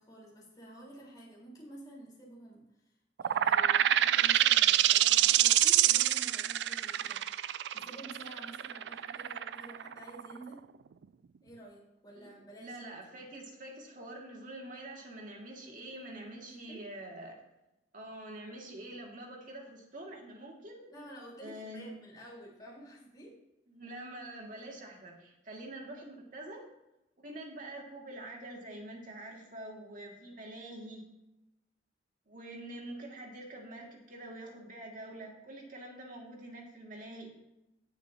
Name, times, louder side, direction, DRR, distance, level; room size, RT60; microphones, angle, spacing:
voice 1, 0.0-2.9 3.2-10.6 11.4-12.8 13.1-13.3 16.5-16.8 20.9-23.4, right 1 dB, 25° left, -5 dB, 4.1 m, -50 dB
sound 1, 3.2-10.5, right 12 dB, 75° right, 0.3 m, -26 dB
voice 2, 12.6-17.3 17.9-20.8 21.4-21.9 23.7-26.6 27.2-31.0 32.3-37.3, right 1 dB, 50° right, 0 dB, 2.3 m, -45 dB
17.5 x 7.1 x 2.9 m, 0.91 s
head